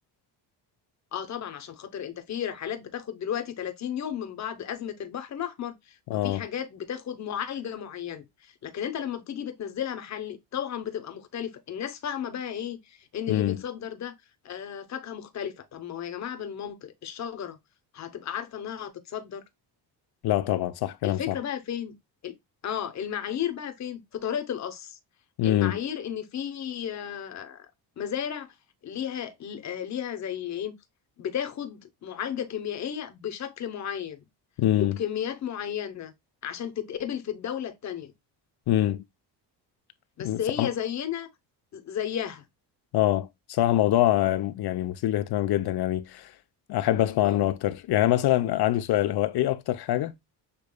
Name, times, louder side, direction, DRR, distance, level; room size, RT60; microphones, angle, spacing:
voice 1, 1.1-6.0 6.2-14.1 14.4-17.6 17.9-19.4 21.0-21.9 22.2-22.3 22.6-25.0 25.4-27.7 28.0-28.5 28.8-30.7 31.2-34.2 34.8-36.1 36.4-38.1 40.2-41.3 41.7-42.4 47.2-47.4, left 9 dB, 40° left, 0.9 m, -33 dB
voice 2, 6.1-6.5 13.3-13.6 20.2-21.4 25.4-25.8 34.6-35.0 38.7-39.0 40.2-40.7 42.9-46.3 46.7-50.1, left 13 dB, 65° left, 0.7 m, -24 dB
6.8 x 3.1 x 2.2 m
cardioid pair, 120°, 42 cm